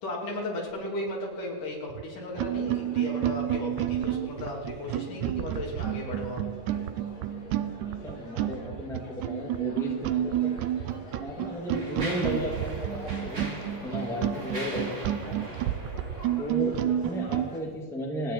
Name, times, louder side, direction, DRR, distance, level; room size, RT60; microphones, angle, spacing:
voice 1, 0.0-6.4 17.2-17.3, left 1 dB, 80° left, -2 dB, 4.8 m, -35 dB
sound 1, 1.9-2.0 2.4-17.5, right 12 dB, 80° right, 1.9 m, -30 dB
sound 2, 2.3-17.6, left 2 dB, 30° left, 2.5 m, -48 dB
voice 2, 8.0-10.5 11.2-13.5 13.8-15.4 16.4-18.3, equal, ahead, -1 dB, 1.7 m, -34 dB
Mechanisms, 10.3-10.5 11.2-17.0, right 1 dB, 25° right, 2.9 m, -41 dB
28.0 x 9.5 x 4.3 m, 1.5 s
omnidirectional pair, 3.7 m